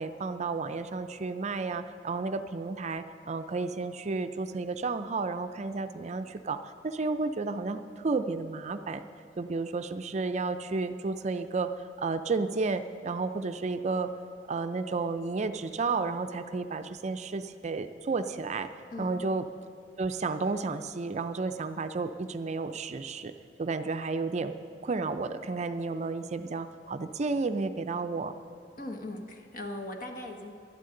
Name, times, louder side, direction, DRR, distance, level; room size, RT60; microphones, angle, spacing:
voice 1, 0.0-6.6 6.8-9.0 9.4-11.7 12.0-14.1 14.5-18.7 19.0-19.4 20.0-23.3 23.6-24.5 24.8-28.3, right 3 dB, 40° right, 9 dB, 0.4 m, -32 dB
voice 2, 28.8-30.5, left 1 dB, 50° left, 3 dB, 1.2 m, -39 dB
19.5 x 12.0 x 3.8 m, 2.6 s
head